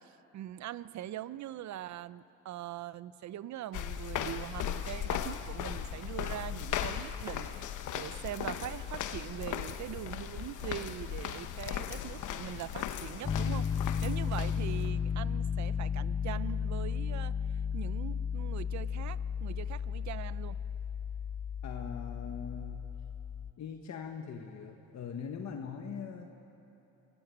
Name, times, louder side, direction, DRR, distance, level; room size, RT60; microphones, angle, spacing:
voice 1, 0.0-17.4 17.7-20.6, right 12 dB, 65° right, 16 dB, 0.7 m, -42 dB
sound 1, 3.7-14.9, left 10 dB, 80° left, 1.2 m, -37 dB
Piano, 13.2-23.5, left 7 dB, 25° left, 0.6 m, -34 dB
voice 2, 21.6-22.9 23.6-26.3, left 6 dB, 60° left, 3 dB, 1.6 m, -41 dB
27.5 x 18.0 x 9.3 m, 3.0 s
cardioid pair, 90°, 30 cm